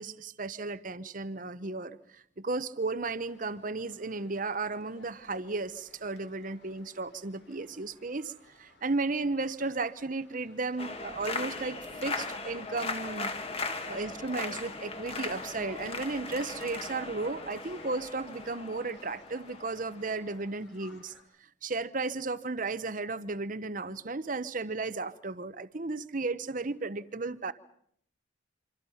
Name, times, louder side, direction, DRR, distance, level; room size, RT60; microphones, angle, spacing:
voice 1, 0.0-13.3 13.9-21.1 21.6-27.5, right 3 dB, 45° right, 14 dB, 0.9 m, -34 dB
sound 1, 3.0-21.2, left 3 dB, 65° left, 4.7 m, -59 dB
sound 2, 10.8-20.5, left 3 dB, 30° left, 2.1 m, -38 dB
27.0 x 26.0 x 5.7 m, 0.68 s
head